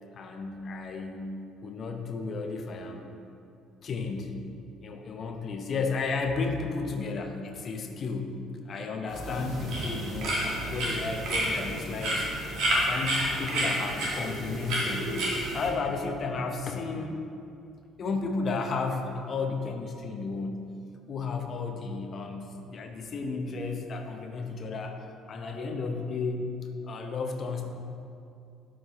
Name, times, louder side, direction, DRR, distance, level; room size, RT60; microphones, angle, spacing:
voice 1, 0.1-1.3 1.6-3.1 3.8-4.4 4.8-8.3 8.6-10.4 10.7-12.3 12.6-17.2 18.0-20.6 21.1-26.5 26.8-27.6, left 4 dB, 45° left, 4 dB, 0.8 m, -33 dB
sound 1, 9.1-15.7, right 1 dB, 60° right, 1.8 m, -30 dB
12.0 x 5.0 x 3.0 m, 2.5 s
figure-of-eight pair, 50°, 0 cm